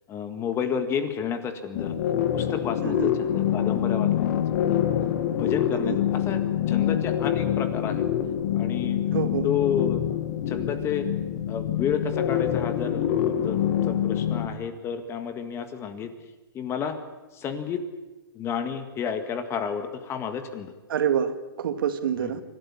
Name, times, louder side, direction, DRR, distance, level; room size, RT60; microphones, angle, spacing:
voice 1, 0.1-2.0 2.3-4.3 4.5-4.8 5.3-6.4 6.7-8.1 8.5-9.0 9.4-10.0 10.5-11.1 11.5-16.1 16.5-17.0 17.3-17.8 18.3-20.7 22.2-22.3, left 7 dB, 20° left, 9 dB, 1.8 m, -31 dB
sound 1, 1.7-14.5, left 10 dB, 50° left, 2.3 m, -25 dB
voice 2, 9.1-9.5 20.9-22.4, right 8 dB, 65° right, 9 dB, 2.0 m, -27 dB
26.5 x 12.5 x 9.9 m, 1.1 s
hypercardioid pair, 145°, 13 cm